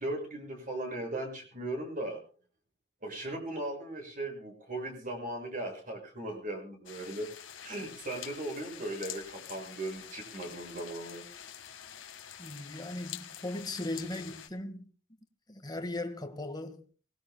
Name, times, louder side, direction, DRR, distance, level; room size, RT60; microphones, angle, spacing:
voice 1, 0.0-2.2 3.0-7.3 7.6-11.2, right 1 dB, 45° right, 6.4 m, -38 dB
sound 1, 6.9-14.5, left 9 dB, 80° left, 1.6 m, -46 dB
voice 2, 12.4-14.9 15.5-16.8, left 2 dB, 20° left, 1.7 m, -38 dB
24.5 x 19.5 x 2.2 m
head